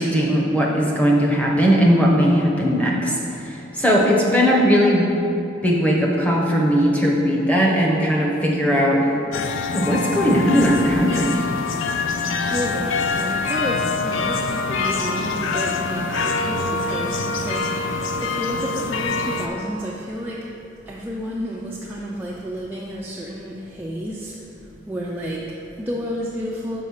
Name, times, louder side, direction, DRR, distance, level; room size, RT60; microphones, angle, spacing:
voice 1, 0.0-5.1 5.6-9.1 9.7-11.4, equal, 5° left, -3 dB, 0.8 m, -18 dB
sound 1, 9.3-19.5, left 4 dB, 80° left, 0.4 m, -25 dB
voice 2, 12.4-26.8, equal, 10° right, -4 dB, 0.4 m, -31 dB
5.4 x 5.1 x 6.4 m, 2.9 s
head